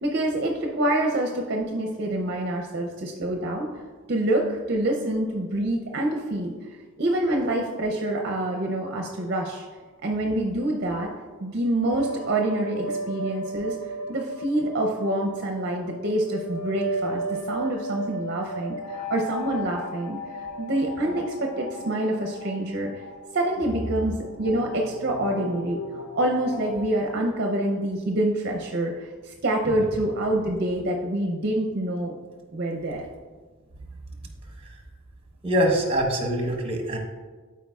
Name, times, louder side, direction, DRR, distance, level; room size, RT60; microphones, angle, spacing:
voice 1, 0.0-3.7 4.1-9.7 10.0-11.1 11.4-13.8 14.1-23.0 23.3-25.8 26.2-32.1 32.5-33.1, right 1 dB, 50° right, 1 dB, 0.6 m, -26 dB
sound 1, 11.9-26.9, right 1 dB, 80° left, 0.5 m, -35 dB
voice 2, 35.4-37.0, equal, 25° right, 2 dB, 1.0 m, -23 dB
12.0 x 4.7 x 2.4 m, 1.4 s
head